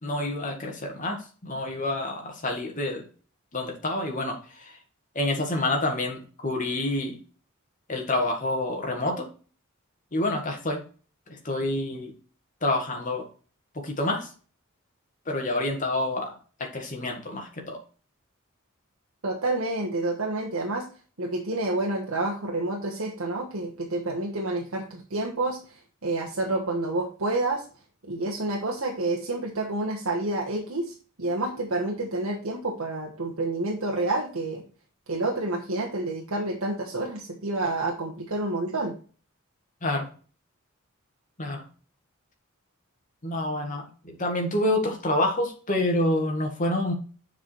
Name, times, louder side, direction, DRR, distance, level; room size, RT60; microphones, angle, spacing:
voice 1, 0.0-3.0 3.5-4.8 5.2-7.2 7.9-9.3 10.1-10.8 11.3-12.1 12.6-13.3 13.8-14.3 15.3-17.8 39.8-40.1 41.4-41.6 43.2-46.9, left 1 dB, 40° left, 2 dB, 1.8 m, -28 dB
voice 2, 19.2-20.9 21.2-25.6 26.0-27.6 28.0-34.6 35.1-38.9, right 2 dB, 85° right, 0 dB, 1.3 m, -29 dB
7.2 x 4.9 x 4.6 m, 0.38 s
head